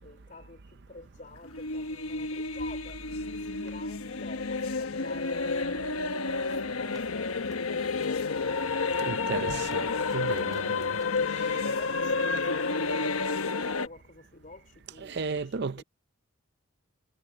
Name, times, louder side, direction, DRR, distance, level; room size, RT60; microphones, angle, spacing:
voice 1, 0.0-3.1 3.4-5.9 6.4-9.5 10.3-13.1 13.5-15.8, left 2 dB, 40° left, 3.8 m, -49 dB
sound 1, 1.4-13.9, left 4 dB, 80° left, 1.1 m, -30 dB
sound 2, 6.5-12.7 13.0-13.1, right 3 dB, 15° right, 5.2 m, -60 dB
voice 2, 9.0-11.0 11.3-11.7 15.0-15.8, right 4 dB, 50° right, 0.6 m, -35 dB
head